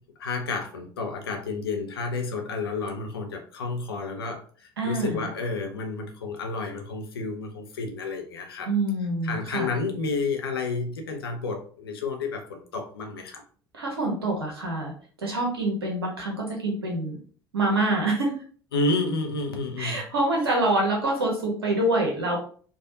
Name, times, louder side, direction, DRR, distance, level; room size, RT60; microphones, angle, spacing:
voice 1, 0.0-8.7 9.2-13.4 18.7-20.1, left 3 dB, 75° left, 3 dB, 0.6 m, -30 dB
voice 2, 4.8-5.2 8.7-9.7 13.7-14.9 15.2-17.2 17.5-18.3 19.8-22.4, right 2 dB, 80° right, -1 dB, 1.1 m, -26 dB
4.6 x 2.4 x 2.7 m, 0.44 s
figure-of-eight pair, 60°, 13 cm